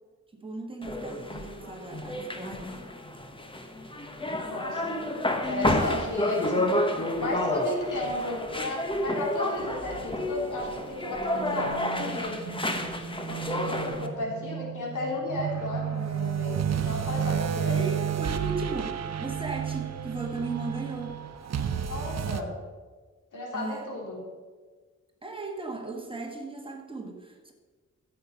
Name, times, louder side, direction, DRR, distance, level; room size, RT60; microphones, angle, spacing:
voice 1, 0.3-2.7 7.0-7.3 17.7-21.2 23.5-23.9 25.2-27.5, right 3 dB, 15° right, 1 dB, 1.7 m, -37 dB
sound 1, 0.8-14.1, left 1 dB, 15° left, 1.1 m, -30 dB
voice 2, 4.5-5.0 5.3-6.8 7.2-12.4 13.3-17.8 21.9-22.5 23.3-24.2, left 1 dB, 85° left, -2 dB, 3.4 m, -33 dB
sound 2, 9.6-17.3, right 6 dB, 35° right, 1.2 m, -41 dB
sound 3, 15.3-22.4, right 8 dB, 60° right, 0.8 m, -30 dB
13.5 x 7.9 x 5.8 m, 1.4 s
wide cardioid pair, 135°, 30 cm